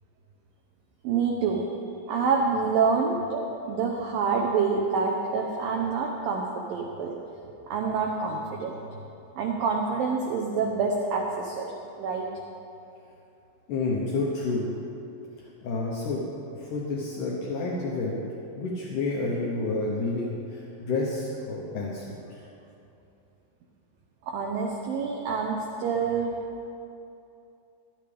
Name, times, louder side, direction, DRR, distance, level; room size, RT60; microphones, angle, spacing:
voice 1, 1.0-1.7 2.1-3.4 3.7-7.2 7.7-8.8 9.4-11.7 12.0-12.3 24.3-26.3, right 5 dB, 85° right, 0 dB, 2.0 m, -27 dB
voice 2, 13.7-14.7 15.4-16.2 16.5-18.2 18.6-22.4, left 3 dB, 80° left, -3 dB, 1.8 m, -30 dB
16.5 x 12.0 x 3.4 m, 2.7 s
omnidirectional pair, 5.2 m